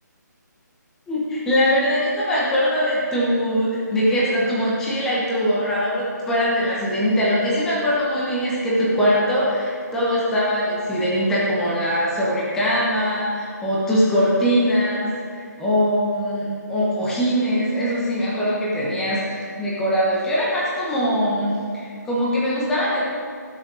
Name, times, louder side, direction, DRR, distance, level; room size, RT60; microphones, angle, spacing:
voice 1, 1.1-23.1, equal, 5° left, -7 dB, 1.1 m, -22 dB
16.0 x 6.4 x 4.8 m, 2.3 s
hypercardioid pair, 175°, 10 cm